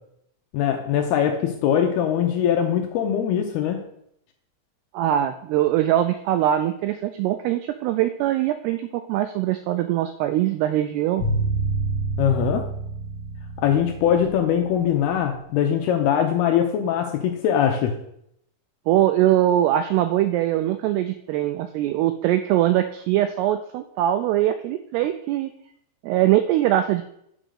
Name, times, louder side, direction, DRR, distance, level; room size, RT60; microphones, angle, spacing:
voice 1, 0.5-3.8 12.2-12.7 13.6-17.9, left 9 dB, 80° left, 4 dB, 2.4 m, -22 dB
voice 2, 4.9-11.2 18.9-25.5 26.0-27.0, right 12 dB, 85° right, 9 dB, 2.3 m, -22 dB
sound 1, 11.2-15.3, right 3 dB, 40° left, 1.8 m, -28 dB
8.6 x 5.1 x 6.4 m, 0.74 s
omnidirectional pair, 5.2 m